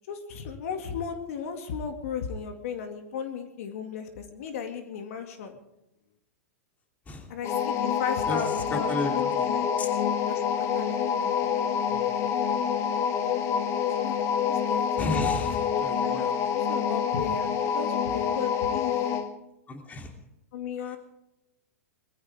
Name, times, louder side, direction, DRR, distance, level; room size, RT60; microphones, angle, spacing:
voice 1, 0.0-5.6 7.3-9.7 10.3-11.3 14.0-14.1 14.5-19.0 20.5-21.0, left 7 dB, 65° left, 6 dB, 2.2 m, -36 dB
sound 1, 7.4-19.3, left 7 dB, 35° left, 1.6 m, -27 dB
voice 2, 8.7-9.1 9.4-9.5 9.8-9.9 11.9-12.2 15.0-16.3 19.7-20.1, left 1 dB, 20° left, 3 dB, 2.9 m, -33 dB
21.5 x 14.5 x 3.6 m, 0.89 s
hypercardioid pair, 120°, 8 cm